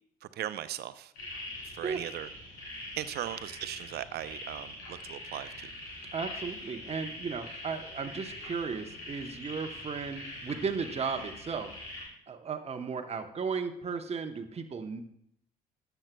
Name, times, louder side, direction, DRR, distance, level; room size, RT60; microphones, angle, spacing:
voice 1, 0.4-1.1 1.7-2.3 3.0-5.7, right 12 dB, 55° right, 14 dB, 0.6 m, -38 dB
sound 1, 1.1-12.0, left 1 dB, 80° left, 3.5 m, -43 dB
voice 2, 6.1-11.7 12.3-15.0, right 5 dB, 35° right, 6 dB, 0.9 m, -35 dB
13.0 x 8.1 x 2.2 m, 0.69 s
hypercardioid pair, 50°, 20 cm